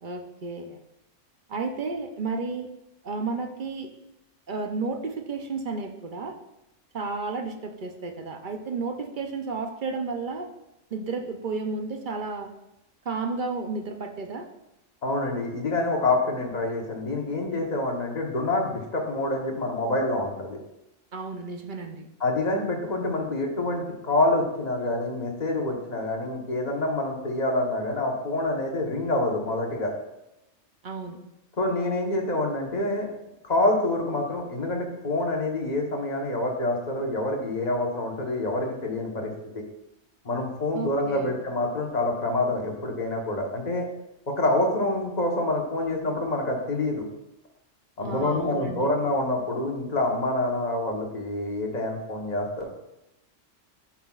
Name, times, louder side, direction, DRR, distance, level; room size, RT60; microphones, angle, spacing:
voice 1, 0.0-0.8 1.5-2.7 3.0-3.9 4.5-6.3 6.9-10.5 10.9-12.5 13.0-14.5 21.1-22.1 30.8-31.2 40.7-41.3 48.0-48.9, right 4 dB, 50° right, 5 dB, 0.7 m, -32 dB
voice 2, 15.0-20.6 22.2-29.9 31.6-33.1 33.4-39.3 40.2-43.9 44.4-47.0 48.0-52.7, left 2 dB, 35° left, 0 dB, 1.2 m, -27 dB
11.5 x 5.8 x 2.4 m, 0.89 s
omnidirectional pair, 1.3 m